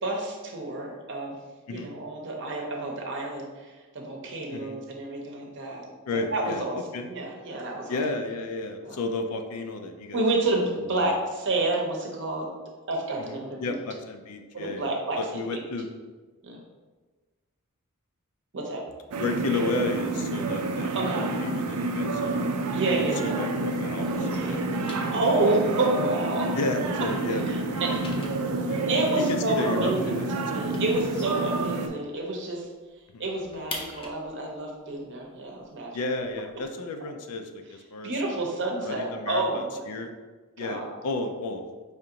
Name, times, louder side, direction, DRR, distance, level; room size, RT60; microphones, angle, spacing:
voice 1, 0.0-1.3 1.7-5.9 6.1-8.0 8.8-9.0 10.1-12.5 12.9-13.8 14.5-15.6 16.4-16.6 18.5-18.8 20.9-21.3 22.7-23.4 24.0-24.1 25.1-26.5 27.5-27.9 28.9-32.7 33.2-36.0 38.0-39.9 40.6-41.0, right 2 dB, 55° right, 0 dB, 0.7 m, -29 dB
voice 2, 6.1-7.1 7.9-10.2 10.8-11.2 13.2-15.9 19.2-20.9 21.2-22.4 22.7-24.6 26.5-28.8 29.1-30.3 30.5-31.0 33.1-33.2 35.9-38.4 38.8-40.1 40.6-41.6, left 2 dB, 75° left, 5 dB, 0.4 m, -33 dB
sound 1, 19.1-31.9, right 2 dB, 85° right, 0.4 m, -29 dB
sound 2, 23.7-26.9 27.2-32.2 32.5-32.6 32.9-36.7, left 2 dB, 25° left, 0.5 m, -45 dB
4.9 x 2.5 x 2.8 m, 1.3 s
head